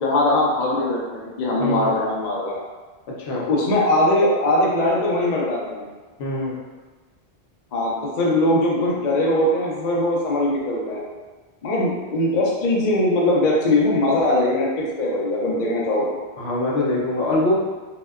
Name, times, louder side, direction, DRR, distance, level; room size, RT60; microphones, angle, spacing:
voice 1, 0.0-2.6 3.3-5.9 7.7-11.0 11.6-16.1, left 1 dB, 55° left, -3 dB, 0.5 m, -21 dB
voice 2, 1.6-2.0 3.2-3.5 6.2-6.6 16.4-17.6, left 1 dB, 75° left, -4 dB, 0.8 m, -23 dB
2.7 x 2.1 x 2.2 m, 1.3 s
omnidirectional pair, 1.1 m